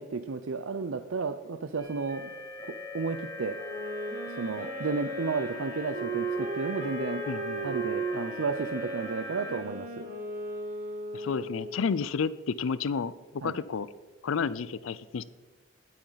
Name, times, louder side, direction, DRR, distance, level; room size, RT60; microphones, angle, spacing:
voice 1, 0.0-2.3 2.6-3.6 4.2-7.2 7.6-9.9 13.4-13.6, right 4 dB, 75° right, 9 dB, 0.6 m, -33 dB
sound 1, 1.8-9.6, left 3 dB, 20° left, 1.8 m, -41 dB
Wind instrument woodwind instrument, 3.5-11.9, right 3 dB, 45° right, 2.5 m, -36 dB
voice 2, 7.3-7.7 11.1-13.1 13.4-13.9 14.2-15.2, left 5 dB, 75° left, 17 dB, 0.4 m, -31 dB
21.0 x 8.7 x 4.0 m, 1.2 s
head